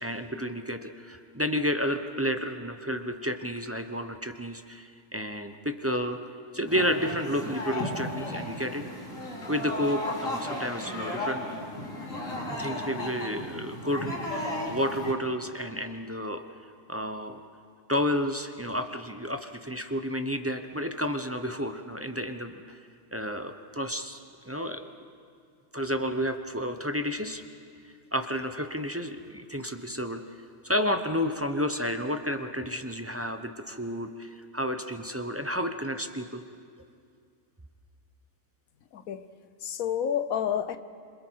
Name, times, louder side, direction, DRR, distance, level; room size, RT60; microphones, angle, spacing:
voice 1, 0.0-6.2 6.5-8.9 9.5-11.5 12.5-16.4 16.9-17.4 17.9-22.8 23.1-24.2 24.4-24.9 25.7-27.4 28.1-30.2 30.6-36.4, equal, 15° right, 6 dB, 0.7 m, -31 dB
sound 1, 6.7-15.1, left 1 dB, 70° left, 3.4 m, -35 dB
voice 2, 38.9-39.3 39.6-40.8, left 9 dB, 90° left, 12 dB, 1.3 m, -29 dB
27.0 x 26.5 x 4.7 m, 2.2 s
omnidirectional pair, 1.4 m